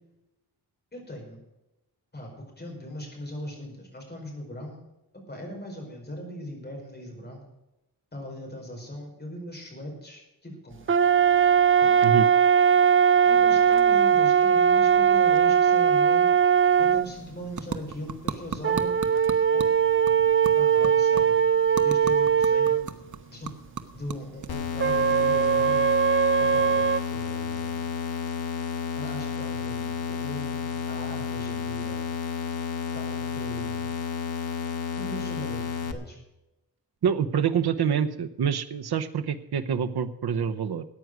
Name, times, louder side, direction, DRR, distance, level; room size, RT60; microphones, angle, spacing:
voice 1, 0.9-1.4 2.1-4.8 5.3-7.4 8.1-11.0 11.8-11.9 13.2-16.3 16.8-19.0 19.5-19.7 20.6-21.4 21.8-22.9 23.3-23.5 23.9-25.9 26.4-27.9 28.9-32.0 32.9-34.0 35.0-36.2, equal, 25° left, 0 dB, 5.2 m, -39 dB
sound 1, 10.9-17.1 18.6-22.9 24.8-27.0, right 7 dB, 35° right, 0.4 m, -20 dB
sound 2, 16.6-26.0, right 6 dB, 50° right, 1.1 m, -39 dB
sound 3, 24.5-35.9, left 6 dB, 70° left, 1.4 m, -31 dB
voice 2, 37.0-40.8, right 7 dB, 75° right, 8 dB, 0.9 m, -26 dB
14.5 x 9.4 x 6.2 m, 0.93 s
wide cardioid pair, 145°, 39 cm